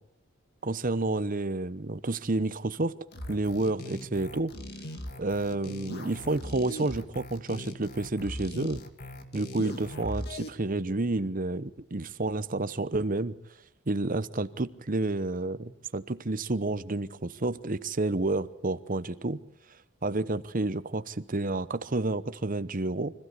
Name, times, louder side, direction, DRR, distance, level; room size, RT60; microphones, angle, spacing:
voice 1, 0.6-2.9 3.3-4.5 5.2-8.8 9.3-13.3 13.9-19.4 20.0-23.1, right 2 dB, 40° right, 14 dB, 0.9 m, -30 dB
sound 1, 3.1-10.5, left 1 dB, 45° left, 2.1 m, -39 dB
25.5 x 15.5 x 8.3 m, 0.80 s
head